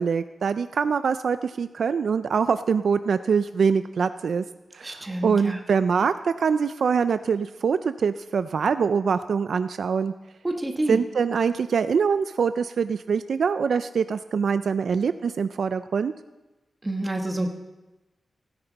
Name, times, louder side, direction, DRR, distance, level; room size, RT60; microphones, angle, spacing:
voice 1, 0.0-4.4 4.7-10.1 10.9-16.1, right 6 dB, 75° right, 11 dB, 0.4 m, -24 dB
voice 2, 4.8-5.6 10.4-11.0 16.8-17.5, right 1 dB, 20° right, 2 dB, 1.3 m, -28 dB
16.5 x 9.6 x 4.0 m, 1.1 s
wide cardioid pair, 155°, 0 cm